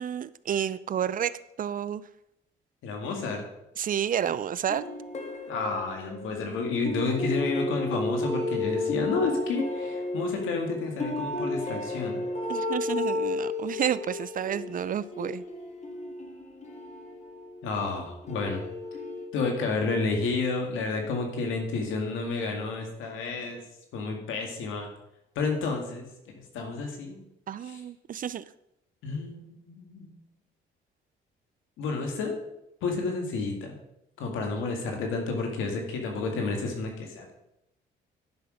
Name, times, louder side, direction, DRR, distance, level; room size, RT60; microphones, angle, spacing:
voice 1, 0.0-2.0 3.8-4.9 12.5-15.4 27.5-28.4, right 9 dB, 45° right, 17 dB, 0.4 m, -30 dB
voice 2, 2.8-3.4 5.5-12.2 17.6-18.6 19.3-23.6 23.9-24.9 25.4-26.1 26.5-27.2 27.6-27.8 29.0-30.1 31.8-32.4 32.8-33.8 34.2-37.3, left 3 dB, 90° left, 2 dB, 2.0 m, -30 dB
sound 1, 4.7-6.4 6.8-17.7 18.2-19.3, left 2 dB, 35° left, 1.7 m, -33 dB
10.5 x 6.1 x 5.1 m, 0.85 s
cardioid pair, 90°, 20 cm